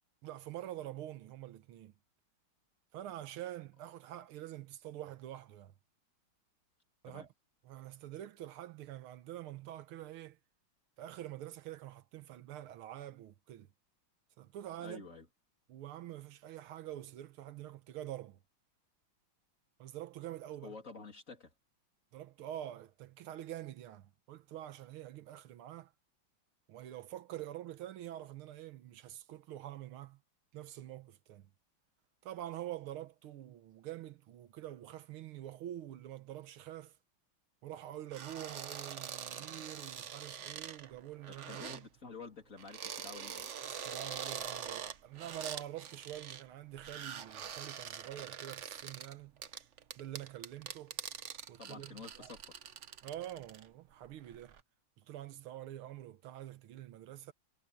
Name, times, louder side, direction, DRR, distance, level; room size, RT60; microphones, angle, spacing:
voice 1, 0.2-1.9 2.9-5.7 7.0-7.3 7.6-10.4 11.0-13.7 14.4-15.0 15.7-18.4 19.8-20.8 22.1-25.9 26.7-30.2 30.5-31.5 32.2-37.0 37.6-41.9 43.7-49.3 50.0-51.0 51.5-52.3 53.0-54.6 55.0-57.3, right 12 dB, 80° right, 1.8 m, -46 dB
voice 2, 14.8-15.2 20.6-21.5 41.3-43.5 51.6-52.5, left 4 dB, 40° left, 3.1 m, -49 dB
sound 1, 38.1-41.8 42.6-46.5 46.8-53.7 54.0-54.6, right 8 dB, 55° right, 0.8 m, -44 dB
omnidirectional pair, 2.3 m